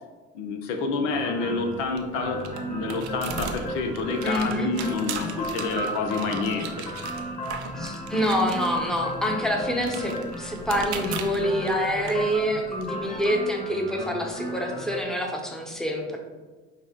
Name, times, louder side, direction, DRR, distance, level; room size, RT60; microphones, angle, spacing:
voice 1, 0.3-2.4 2.7-6.9, left 4 dB, 70° left, 5 dB, 0.6 m, -28 dB
sound 1, 1.1-15.0, equal, 25° left, 1.5 m, -35 dB
sound 2, 1.6-13.3, right 6 dB, 90° right, 0.5 m, -39 dB
voice 2, 4.2-4.7 7.8-16.2, equal, ahead, 1 dB, 0.8 m, -26 dB
5.6 x 2.1 x 3.7 m, 1.3 s
hypercardioid pair, 60°, 32 cm